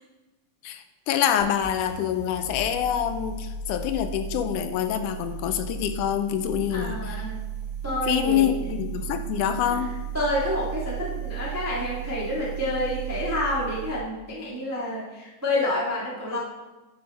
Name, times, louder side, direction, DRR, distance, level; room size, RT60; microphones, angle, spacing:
voice 1, 0.6-7.2 8.1-9.9, left 10 dB, 85° left, 9 dB, 2.1 m, -26 dB
sound 1, 1.4-14.1, right 8 dB, 35° left, 1.9 m, -35 dB
voice 2, 6.7-7.4 7.8-8.5 9.7-9.8 10.1-16.4, left 1 dB, 15° right, -5 dB, 0.6 m, -28 dB
10.5 x 5.5 x 4.1 m, 1.1 s
omnidirectional pair, 3.6 m